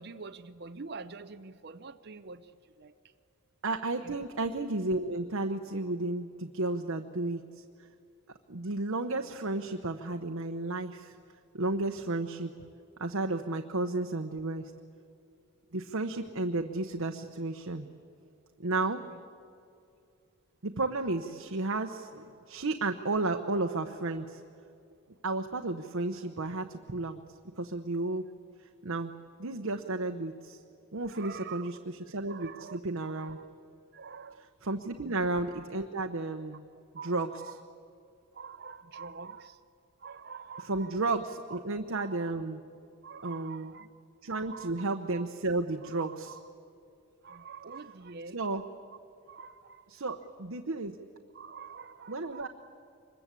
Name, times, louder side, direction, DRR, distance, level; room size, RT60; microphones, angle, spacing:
voice 1, 0.0-2.9 4.0-4.3 19.0-19.2 31.0-31.7 32.2-33.5 33.9-34.5 35.0-35.2 36.9-37.6 38.3-39.6 40.0-41.0 41.5-41.6 41.9-42.3 43.0-43.9 44.3-45.2 45.8-46.4 47.2-48.4 49.3-49.9 51.3-52.5, right 5 dB, 50° right, 8 dB, 0.6 m, -46 dB
voice 2, 3.6-7.6 8.5-11.1 11.5-12.5 13.0-14.7 15.7-17.9 18.6-19.0 20.6-24.4 25.2-27.2 27.6-28.2 28.8-29.1 29.4-30.6 30.9-33.4 34.6-36.6 37.0-37.3 40.7-42.6 43.2-43.7 44.2-46.4 48.3-48.6 49.9-51.0 52.1-52.5, right 2 dB, 70° right, 5 dB, 1.0 m, -33 dB
25.0 x 21.5 x 8.3 m, 2.5 s
head